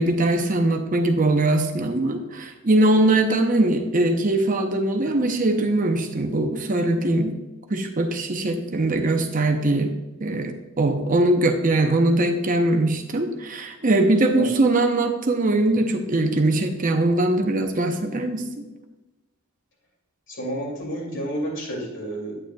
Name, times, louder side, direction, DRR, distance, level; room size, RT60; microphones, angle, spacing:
voice 1, 0.0-7.3 7.7-9.9 10.2-18.7, right 2 dB, 35° right, 5 dB, 0.7 m, -21 dB
voice 2, 20.3-22.3, right 1 dB, 55° left, -2 dB, 2.5 m, -30 dB
9.0 x 8.9 x 2.3 m, 1.1 s
head